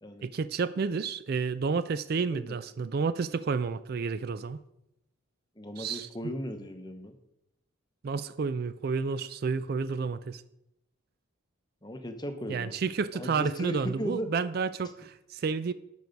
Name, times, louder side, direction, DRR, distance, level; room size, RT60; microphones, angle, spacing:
voice 1, 0.2-4.6 5.8-6.1 8.0-10.4 12.5-15.7, right 5 dB, 50° right, 14 dB, 0.3 m, -30 dB
voice 2, 5.6-7.2 11.8-12.8 13.1-14.3, equal, 20° left, 7 dB, 0.8 m, -37 dB
12.5 x 4.6 x 5.2 m, 0.85 s
head